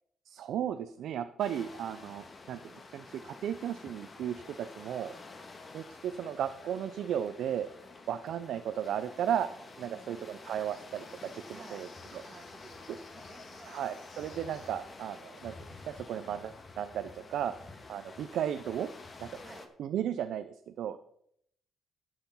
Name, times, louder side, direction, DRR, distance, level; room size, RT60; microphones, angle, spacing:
voice 1, 0.3-5.1 5.7-7.7 8.1-9.5 9.8-11.1 11.3-11.9 12.1-12.2 13.7-15.5 15.9-17.5 17.9-18.9 19.2-19.3 19.8-21.0, right 9 dB, 75° right, 10 dB, 0.6 m, -35 dB
sound 1, 1.4-19.7, left 3 dB, 35° left, 1.8 m, -50 dB
voice 2, 9.8-10.3 11.5-11.8 12.2-13.8 19.4-19.7 20.9-21.0, right 4 dB, 40° right, 5 dB, 1.8 m, -53 dB
sound 2, 10.7-15.1, left 5 dB, 55° left, 2.2 m, -60 dB
12.0 x 6.8 x 5.6 m, 0.71 s
cardioid pair, 90°, 0 cm